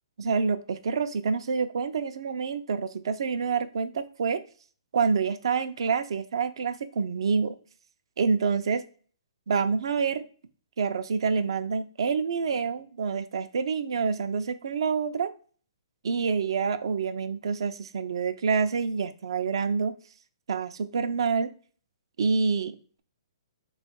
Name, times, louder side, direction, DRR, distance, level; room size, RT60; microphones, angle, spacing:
voice 1, 0.2-4.4 4.9-7.5 8.2-8.8 9.5-10.2 10.8-15.3 16.0-19.9 20.5-21.5 22.2-23.0, right 5 dB, 65° right, 10 dB, 0.4 m, -27 dB
3.0 x 2.3 x 4.3 m, 0.42 s
hypercardioid pair, 160°, 3 cm